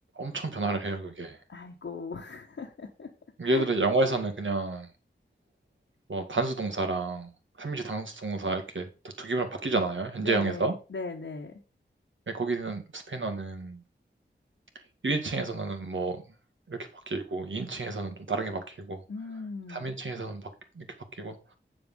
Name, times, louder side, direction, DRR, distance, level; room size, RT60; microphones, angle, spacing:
voice 1, 0.2-1.4 3.4-4.9 6.1-7.3 7.6-8.9 9.2-10.7 12.3-13.8 15.0-16.2 16.7-16.8 17.1-19.0 19.7-20.5 20.8-20.9 21.2-21.4, right 3 dB, 75° right, 1.9 m, -30 dB
voice 2, 1.5-3.1 3.4-3.7 10.2-11.5 19.1-19.9, left 4 dB, 80° left, 1.4 m, -38 dB
7.9 x 6.9 x 5.4 m
wide cardioid pair, 50°, 20 cm